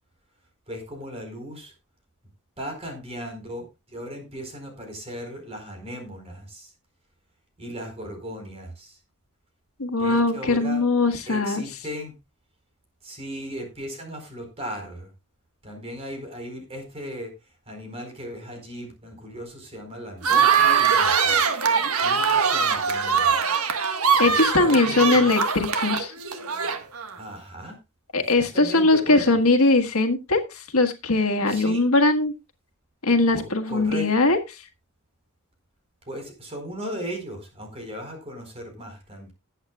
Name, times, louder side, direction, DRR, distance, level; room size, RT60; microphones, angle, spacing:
voice 1, 0.7-1.7 2.6-6.7 7.6-9.0 10.0-10.8 11.3-12.1 13.0-15.1 15.6-17.3 17.7-21.4 22.0-23.3 24.2-25.4 27.2-27.8 28.1-28.2 28.5-29.4 31.5-31.9 33.3-34.1 36.0-39.3, equal, 30° right, 4 dB, 4.5 m, -37 dB
voice 2, 9.8-11.6 24.2-26.1 28.1-32.3 33.0-34.6, left 2 dB, 75° left, 5 dB, 1.6 m, -21 dB
sound 1, 20.2-27.1, right 6 dB, 80° right, 1.5 m, -22 dB
19.5 x 8.2 x 2.4 m, 0.24 s
head